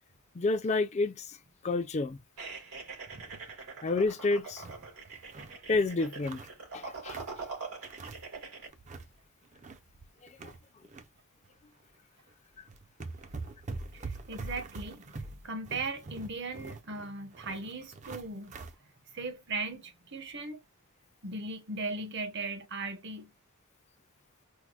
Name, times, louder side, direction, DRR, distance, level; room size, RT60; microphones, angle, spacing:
voice 1, 0.4-1.4 1.6-2.2 3.8-4.6 5.7-6.4 6.7-7.2, left 3 dB, 30° left, 0.4 m, -29 dB
sound 1, 2.4-8.7, right 4 dB, 90° right, 2.6 m, -44 dB
sound 2, 3.1-3.5 3.9-4.0 4.3-5.6 6.0-7.4 7.8-8.4 8.7-9.1 9.4-11.1 11.4-11.6 12.3-12.4 12.7-18.7, right 3 dB, 30° right, 0.4 m, -44 dB
voice 2, 13.9-18.5 19.1-20.6 21.2-23.3, right 3 dB, 50° right, 0.8 m, -38 dB
4.6 x 2.0 x 2.4 m
head